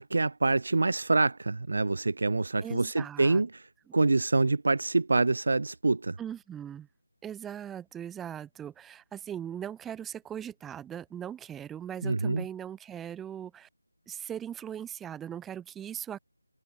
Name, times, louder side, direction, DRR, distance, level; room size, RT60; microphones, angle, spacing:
voice 1, 0.0-3.6 3.9-6.2 12.0-12.4, right 3 dB, 50° right, 1.7 m, -26 dB
voice 2, 2.6-3.5 6.2-6.9 7.2-13.7 14.1-16.2, right 9 dB, 5° right, 7.3 m, -39 dB
figure-of-eight pair, 160°, 0 cm